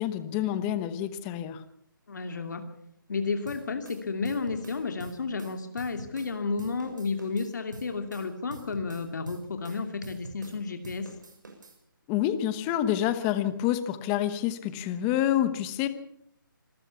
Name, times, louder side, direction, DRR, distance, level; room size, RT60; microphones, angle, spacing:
voice 1, 0.0-1.6 12.1-15.9, left 11 dB, 15° left, 12 dB, 1.1 m, -28 dB
voice 2, 2.1-2.6 3.1-11.1, left 4 dB, 55° left, 6 dB, 2.6 m, -32 dB
sound 1, 3.5-6.3 6.6-10.6 10.8-11.8, right 3 dB, 60° right, 6.8 m, -46 dB
26.0 x 14.0 x 7.1 m, 0.73 s
hypercardioid pair, 165°, 12 cm